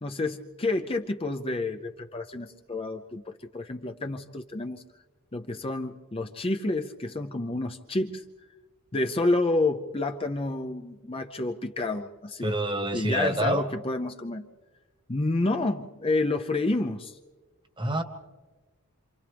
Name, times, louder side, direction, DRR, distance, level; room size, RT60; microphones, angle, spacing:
voice 1, 0.0-4.8 5.3-8.2 8.9-12.5 12.9-14.4 15.1-17.2, left 2 dB, 25° left, 5 dB, 0.6 m, -29 dB
voice 2, 12.4-13.7 17.8-18.0, right 1 dB, 20° right, 8 dB, 1.3 m, -27 dB
27.5 x 27.5 x 3.5 m, 1.3 s
head